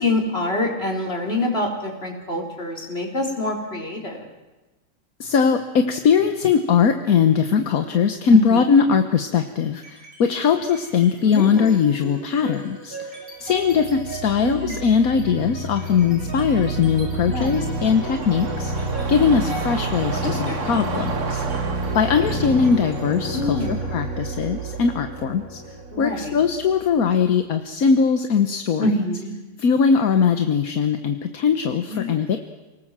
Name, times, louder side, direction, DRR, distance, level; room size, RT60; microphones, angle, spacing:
voice 1, 0.0-4.3 8.3-8.6 11.2-11.7 14.3-14.7 17.3-17.5 20.2-20.8 23.3-23.9 25.9-26.3 28.8-29.4 31.9-32.3, left 1 dB, 40° left, 1 dB, 4.3 m, -26 dB
voice 2, 5.2-21.4 21.9-25.6 26.0-28.9 29.6-32.4, left 6 dB, 70° left, 7 dB, 1.5 m, -20 dB
sound 1, 9.7-10.3 10.6-27.2, right 2 dB, 75° right, 5.5 m, -30 dB
sound 2, 16.8-25.3 25.6-25.7, right 4 dB, 55° right, 1.9 m, -34 dB
28.0 x 19.5 x 7.5 m, 1.1 s
omnidirectional pair, 1.6 m